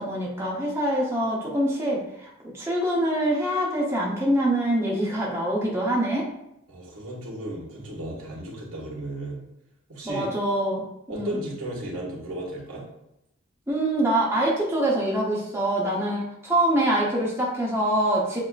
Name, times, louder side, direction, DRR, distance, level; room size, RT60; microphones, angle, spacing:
voice 1, 0.0-2.3 2.5-6.3 10.0-10.9 11.1-11.4 13.7-18.4, right 1 dB, 10° right, -5 dB, 0.9 m, -24 dB
voice 2, 6.7-9.4 9.9-10.3 11.1-12.8, right 1 dB, 90° right, -3 dB, 1.6 m, -34 dB
7.5 x 2.8 x 2.4 m, 0.82 s
head